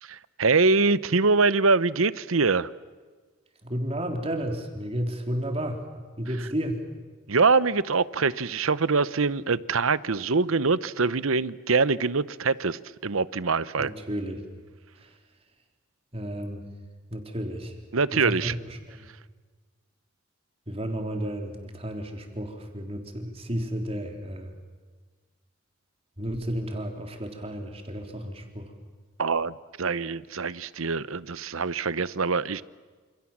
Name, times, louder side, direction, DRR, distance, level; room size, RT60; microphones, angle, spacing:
voice 1, 0.1-2.7 7.3-13.9 17.9-18.5 29.2-32.6, right 4 dB, 80° right, 0.9 m, -24 dB
voice 2, 3.6-5.8 6.2-6.8 13.8-14.4 15.0-15.2 16.1-16.7 17.1-17.8 18.1-19.1 20.7-24.5 26.2-28.7, equal, 30° right, 3.9 m, -32 dB
28.5 x 28.0 x 7.4 m
head